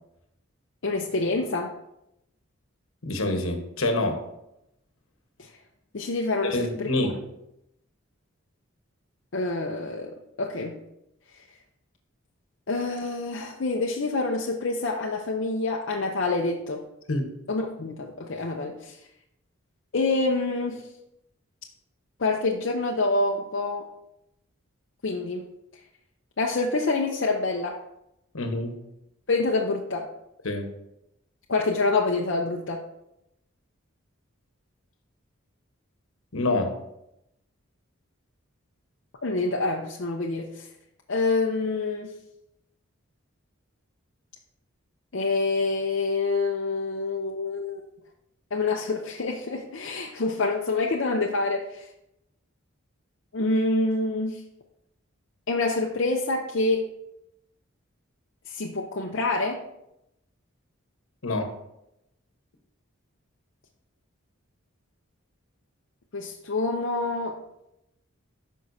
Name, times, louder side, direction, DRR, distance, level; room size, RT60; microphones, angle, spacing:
voice 1, 0.8-1.7 5.9-6.9 9.3-10.8 12.7-16.8 17.5-19.0 19.9-20.8 22.2-23.9 25.0-25.4 26.4-27.8 29.3-30.1 31.5-32.8 39.2-40.7 41.1-42.1 45.1-47.8 48.5-51.8 53.3-54.4 55.5-56.8 58.5-59.6 66.1-67.4, left 3 dB, 60° left, 0 dB, 0.6 m, -26 dB
voice 2, 3.0-4.2 6.4-7.2 17.1-17.3 28.3-28.7 30.4-30.7 36.3-36.7 61.2-61.5, left 2 dB, 80° left, 5 dB, 1.2 m, -26 dB
12.5 x 5.5 x 2.7 m, 0.85 s
head